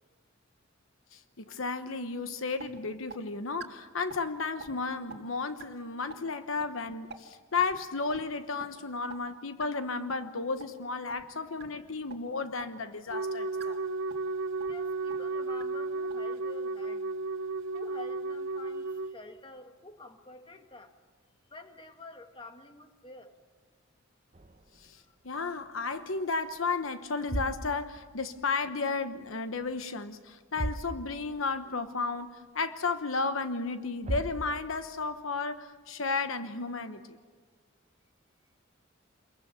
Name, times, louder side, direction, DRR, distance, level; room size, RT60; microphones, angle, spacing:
voice 1, 1.1-13.8 24.8-25.0 25.2-37.2, left 4 dB, 85° left, 10 dB, 1.1 m, -33 dB
sound 1, 2.1-2.2 2.6-2.7 3.1-3.2 3.6-3.7 4.1-4.3 4.6-4.7 5.1-5.2 5.6-5.7 6.1-6.2 6.6-6.7 7.1-7.2 7.6-7.8 8.1-8.2 8.6-8.7 9.1-9.2 9.6-9.7 10.1-10.2 10.6-10.7 11.1-11.3 11.6-11.7 12.1-12.2 12.6-12.7 13.1-13.2 13.6-13.7 14.1-14.3 14.6-14.7 15.1-15.2 15.6-15.7 16.1-16.2, right 5 dB, 55° right, 1.9 m, -44 dB
Wind instrument woodwind instrument, 13.1-19.2, right 3 dB, 75° right, 0.7 m, -33 dB
voice 2, 14.7-17.1 17.7-20.9 21.5-23.3, left 2 dB, 25° left, 6 dB, 1.6 m, -49 dB
sound 2, 24.3-26.0 26.3-26.6 27.1-28.9 29.2-29.9 30.1-30.2 30.5-31.5 31.9-32.0 32.6-32.7 33.7-33.8 34.0-35.0, right 1 dB, 35° right, 1.0 m, -39 dB
27.0 x 22.5 x 7.1 m, 1.5 s
head